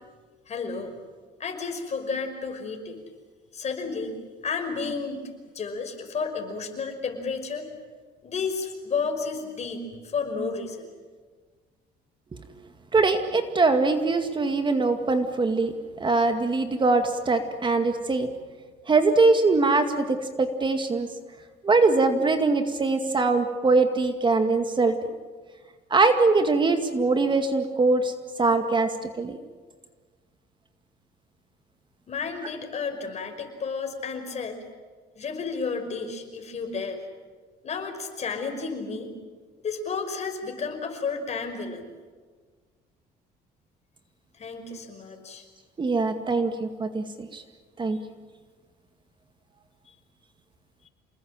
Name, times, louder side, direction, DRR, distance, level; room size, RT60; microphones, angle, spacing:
voice 1, 0.5-0.9 1.4-3.0 3.5-5.3 5.5-7.7 8.2-10.9 32.1-34.6 35.2-37.0 37.6-39.1 39.6-41.9 44.3-45.4, left 4 dB, 40° left, 5 dB, 5.5 m, -32 dB
voice 2, 12.9-18.3 18.9-21.1 21.6-25.0 25.9-28.1 28.4-28.9 29.2-29.4 45.8-47.4 47.8-48.0, right 3 dB, 30° right, 7 dB, 2.1 m, -22 dB
28.0 x 20.0 x 8.9 m, 1.5 s
cardioid pair, 110°, 17 cm